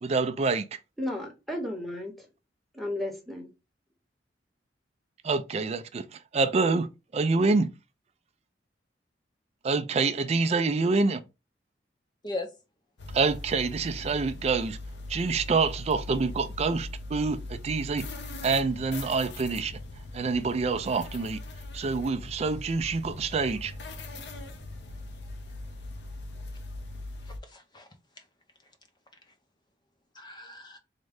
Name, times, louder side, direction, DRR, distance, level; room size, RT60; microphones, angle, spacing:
voice 1, 0.0-0.8 5.2-7.7 9.6-11.2 13.1-14.8 15.1-18.1 18.4-19.8 20.1-21.4 21.7-23.7, right 4 dB, 35° right, 0.3 m, -27 dB
voice 2, 1.0-2.3 2.7-3.5, left 1 dB, ahead, 0.9 m, -34 dB
sound 1, 13.0-27.4, left 2 dB, 70° left, 0.6 m, -40 dB
voice 3, 27.2-28.3 28.6-28.7 29.2-29.3 30.1-30.8, left 2 dB, 25° left, 0.6 m, -39 dB
3.6 x 2.1 x 3.4 m
head